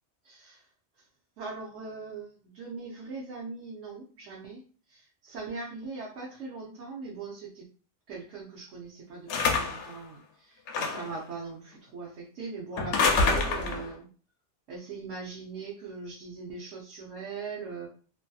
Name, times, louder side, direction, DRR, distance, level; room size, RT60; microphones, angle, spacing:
voice 1, 0.2-0.7 1.0-1.1 1.4-7.7 8.1-14.1 14.7-17.9, right 4 dB, 80° right, -3 dB, 1.0 m, -41 dB
sound 1, 9.3-9.9 10.7-11.2 12.8-13.9, left 4 dB, 75° left, 0.9 m, -26 dB
2.6 x 2.6 x 2.3 m, 0.39 s
omnidirectional pair, 1.2 m